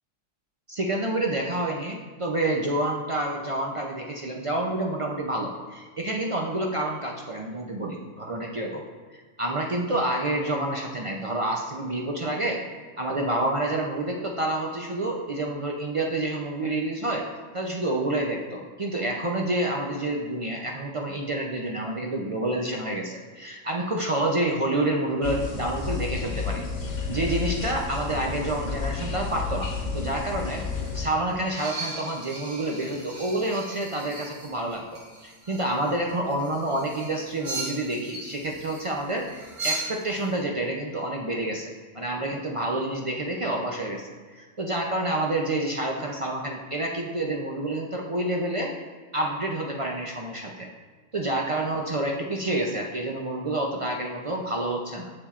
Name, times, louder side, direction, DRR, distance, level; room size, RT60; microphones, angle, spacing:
voice 1, 0.7-8.8 9.1-12.6 13.0-17.2 17.5-26.6 27.1-30.6 30.9-48.7 49.1-50.7 51.1-55.1, right 1 dB, 50° right, 0 dB, 0.3 m, -28 dB
sound 1, 25.2-31.1, left 4 dB, 85° left, 1.3 m, -31 dB
sound 2, 30.0-40.3, right 2 dB, 85° right, 1.6 m, -38 dB
7.0 x 7.0 x 2.4 m, 1.5 s
omnidirectional pair, 1.3 m